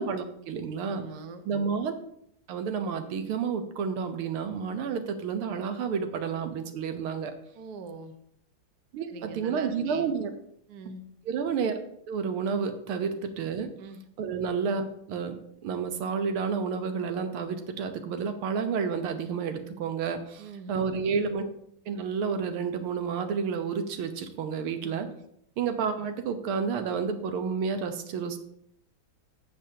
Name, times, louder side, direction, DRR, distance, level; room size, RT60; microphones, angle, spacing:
voice 1, 0.0-1.0 1.5-1.9 2.5-7.3 8.9-10.3 11.3-11.8 12.1-13.7 14.2-21.4 21.9-25.1 25.6-28.4, right 6 dB, 85° right, 8 dB, 1.8 m, -30 dB
voice 2, 0.9-1.4 7.5-8.1 9.1-10.1 10.7-11.1 13.8-14.0 20.4-21.0 24.8-25.0, right 4 dB, 60° right, 8 dB, 1.2 m, -43 dB
13.0 x 7.6 x 2.8 m, 0.71 s
omnidirectional pair, 2.3 m